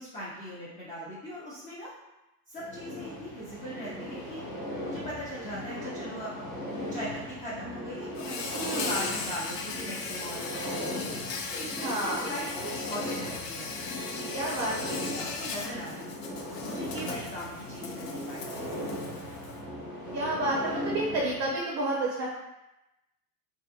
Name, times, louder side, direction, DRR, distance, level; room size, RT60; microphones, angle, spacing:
voice 1, 0.0-1.9 2.5-4.4 4.8-6.3 6.7-13.7 14.0-18.9, equal, 15° left, -8 dB, 0.5 m, -40 dB
sound 1, 2.6-21.5, left 1 dB, 40° left, 1.0 m, -38 dB
Insect, 8.1-19.6, left 4 dB, 80° left, 0.5 m, -38 dB
voice 2, 8.5-8.9 11.8-12.3 14.3-15.0 20.1-22.3, right 2 dB, 35° right, -4 dB, 0.5 m, -30 dB
2.6 x 2.4 x 2.3 m, 0.96 s
figure-of-eight pair, 80°, 48 cm